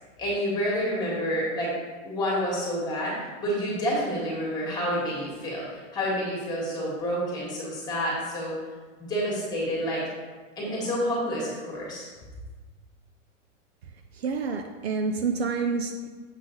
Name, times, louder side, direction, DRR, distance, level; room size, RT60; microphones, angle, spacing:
voice 1, 0.2-1.7 2.0-8.6 9.1-10.0 10.6-12.1, equal, 10° left, -5 dB, 1.7 m, -29 dB
voice 2, 14.1-16.1, right 4 dB, 50° right, 5 dB, 0.6 m, -28 dB
7.3 x 5.7 x 3.8 m, 1.3 s
supercardioid pair, 170°, 40 cm